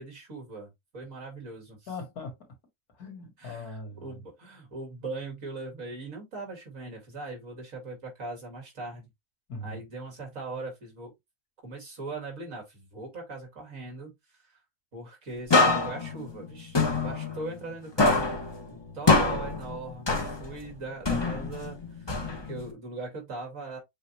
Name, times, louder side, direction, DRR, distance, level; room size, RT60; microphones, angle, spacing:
voice 1, 0.0-1.9 3.4-9.1 9.6-11.1 11.6-14.6 14.9-18.3 18.7-23.8, right 3 dB, 55° right, 2.6 m, -40 dB
voice 2, 1.9-2.5 2.9-4.2 9.5-9.8, left 2 dB, 75° left, 2.1 m, -40 dB
sound 1, 15.5-17.7 18.0-20.7 21.1-22.7, left 3 dB, 25° left, 0.6 m, -25 dB
7.3 x 2.4 x 2.9 m
omnidirectional pair, 1.6 m